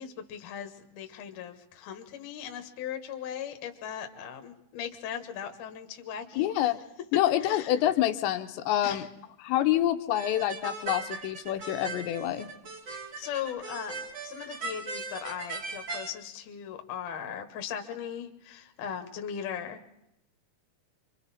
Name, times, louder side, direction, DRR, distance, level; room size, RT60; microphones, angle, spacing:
voice 1, 0.0-6.7 7.4-7.7 8.8-9.1 12.9-19.8, left 8 dB, 60° left, 6 dB, 2.3 m, -38 dB
voice 2, 6.4-6.8 7.1-9.1 9.4-12.5, left 12 dB, 85° left, 6 dB, 3.1 m, -27 dB
sound 1, 10.1-16.1, right 3 dB, 50° right, 1.3 m, -39 dB
27.0 x 24.5 x 4.2 m, 0.85 s
omnidirectional pair, 4.9 m